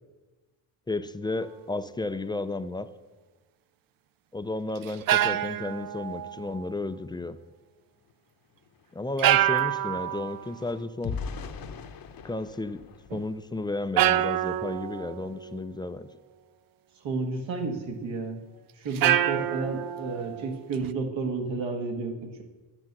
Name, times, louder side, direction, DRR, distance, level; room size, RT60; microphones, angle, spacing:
voice 1, 0.9-2.9 4.3-7.4 8.9-11.2 12.2-16.1, left 2 dB, 10° left, 11 dB, 0.3 m, -33 dB
sound 1, 1.3-1.6 4.8-6.7 9.2-10.6 13.1-13.2 14.0-15.6 18.9-20.9, right 12 dB, 50° right, 0.5 m, -27 dB
sound 2, 8.1-8.2 8.5-13.9 14.5-14.7 15.0-15.3, left 5 dB, 50° left, 0.9 m, -41 dB
voice 2, 17.0-18.4 18.8-22.4, right 3 dB, 75° right, 3 dB, 1.8 m, -31 dB
9.8 x 6.9 x 5.9 m, 1.2 s
cardioid pair, 85°, 46 cm